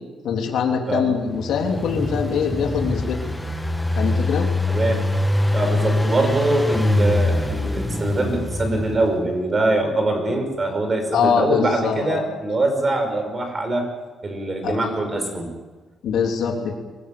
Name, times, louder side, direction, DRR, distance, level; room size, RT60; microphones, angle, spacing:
voice 1, 0.2-3.2 4.0-4.5 11.1-12.3 14.6-14.8 16.0-16.8, left 6 dB, 75° left, 1 dB, 3.4 m, -23 dB
Engine, 1.2-9.3, left 1 dB, 10° left, 1.3 m, -23 dB
voice 2, 4.7-5.1 5.5-13.9 14.2-15.5, right 2 dB, 25° right, 5 dB, 5.4 m, -23 dB
24.0 x 17.0 x 8.7 m, 1.3 s
cardioid pair, 145°, 0 cm